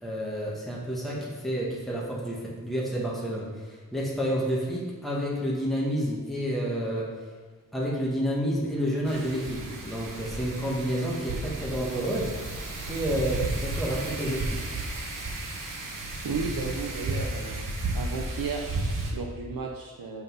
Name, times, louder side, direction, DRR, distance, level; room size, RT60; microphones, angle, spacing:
voice 1, 0.0-7.1 7.7-12.3 12.9-14.6, equal, ahead, -5 dB, 1.4 m, -29 dB
Wind, 9.1-19.1, right 2 dB, 65° right, 1.2 m, -33 dB
voice 2, 16.2-17.7 17.9-20.2, right 4 dB, 80° right, 0 dB, 0.7 m, -34 dB
5.7 x 5.4 x 5.6 m, 1.4 s
wide cardioid pair, 100°, 34 cm